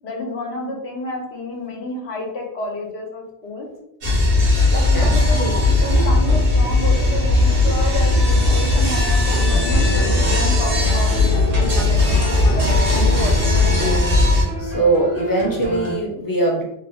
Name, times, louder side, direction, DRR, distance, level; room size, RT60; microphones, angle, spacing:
voice 1, 0.0-3.7 4.7-5.4 5.8-14.0, left 2 dB, 75° left, 0 dB, 1.0 m, -30 dB
sound 1, 4.0-14.4, left 2 dB, 60° right, 1.1 m, -17 dB
voice 2, 4.9-5.5 14.6-16.6, right 2 dB, 25° left, -2 dB, 0.6 m, -21 dB
sound 2, 9.3-16.0, left 1 dB, 90° right, 1.4 m, -27 dB
3.1 x 2.0 x 3.5 m, 0.78 s
omnidirectional pair, 1.1 m